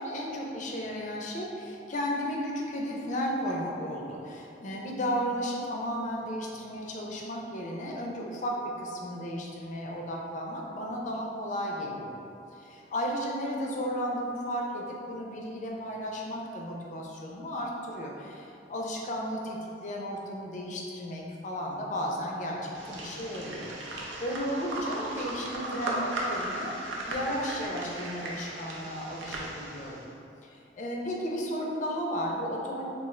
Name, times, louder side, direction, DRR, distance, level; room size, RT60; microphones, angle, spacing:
voice 1, 0.0-12.2 12.5-23.7 24.0-30.0 30.4-32.9, equal, 40° left, -1 dB, 0.4 m, -34 dB
sound 1, 22.7-30.0, right 1 dB, 85° right, 0.5 m, -36 dB
3.6 x 2.4 x 3.1 m, 2.7 s
head